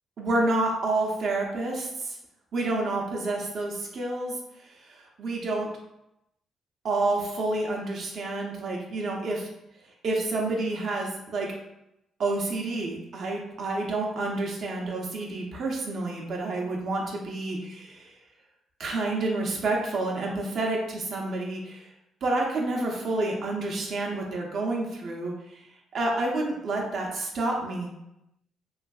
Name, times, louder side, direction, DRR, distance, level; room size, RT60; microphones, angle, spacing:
voice 1, 0.2-2.2 2.5-4.3 4.6-5.7 6.8-9.5 10.0-11.5 12.2-18.1 18.8-21.9 22.2-25.7 25.9-27.9, right 2 dB, 60° right, -1 dB, 0.6 m, -29 dB
3.1 x 2.5 x 2.3 m, 0.85 s
cardioid pair, 90°, 0 cm